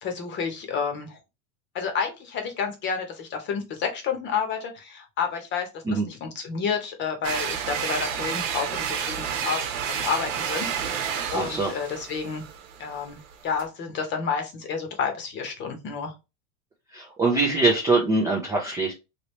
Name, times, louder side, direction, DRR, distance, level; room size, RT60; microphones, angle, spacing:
voice 1, 0.0-1.2 1.7-10.9 11.3-12.4 12.8-16.1, left 6 dB, 30° left, 5 dB, 0.8 m, -30 dB
sound 1, 7.2-13.6, right 8 dB, 70° right, 1.0 m, -30 dB
voice 2, 11.3-11.7 16.9-18.9, right 3 dB, 10° right, -2 dB, 0.3 m, -23 dB
3.0 x 2.7 x 3.1 m, 0.26 s
supercardioid pair, 145°, 39 cm